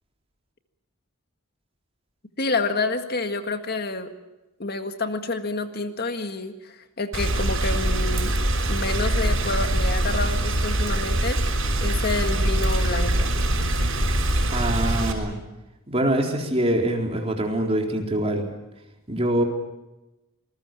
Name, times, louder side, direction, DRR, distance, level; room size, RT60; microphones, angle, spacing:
voice 1, 2.4-4.1 4.6-8.3 8.6-11.4 11.8-13.3, left 3 dB, 50° left, 7 dB, 1.8 m, -28 dB
Rain, 7.1-15.1, right 1 dB, 85° right, 6.0 m, -23 dB
voice 2, 14.5-15.4 15.9-18.4 19.1-19.4, right 1 dB, 30° right, 2 dB, 4.1 m, -24 dB
27.5 x 21.0 x 7.5 m, 0.99 s
head